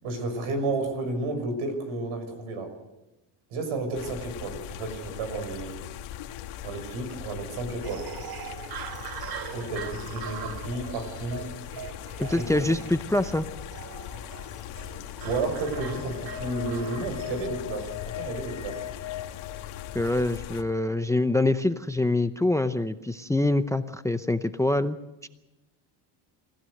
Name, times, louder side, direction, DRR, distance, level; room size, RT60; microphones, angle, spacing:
voice 1, 0.0-2.7 3.5-5.8 6.6-8.1 9.5-11.5 12.2-12.6 15.2-18.8, right 2 dB, 75° right, 7 dB, 6.5 m, -32 dB
sound 1, 3.9-20.6, left 11 dB, 80° left, 1.9 m, -40 dB
sound 2, 7.8-17.5, right 9 dB, 45° right, 1.4 m, -41 dB
voice 2, 12.2-13.5 19.9-25.0 25.2-25.3, left 2 dB, 5° left, 11 dB, 0.7 m, -25 dB
sound 3, 15.7-20.4, left 11 dB, 50° left, 3.0 m, -39 dB
28.0 x 16.0 x 6.5 m, 0.97 s
cardioid pair, 115°, 49 cm